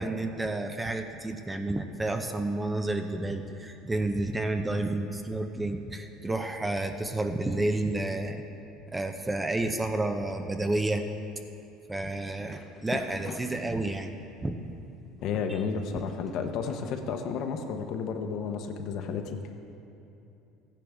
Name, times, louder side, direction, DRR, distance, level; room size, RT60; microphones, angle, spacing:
voice 1, 0.0-8.4 8.9-11.0 11.9-14.1 14.4-14.6, right 2 dB, 15° right, 6 dB, 0.7 m, -30 dB
sound 1, 12.3-14.2 14.7-18.0, left 4 dB, 30° left, 0.9 m, -44 dB
voice 2, 15.2-19.4, left 6 dB, 60° left, 5 dB, 1.0 m, -32 dB
14.5 x 10.0 x 3.5 m, 2.8 s
supercardioid pair, 105°, 0 cm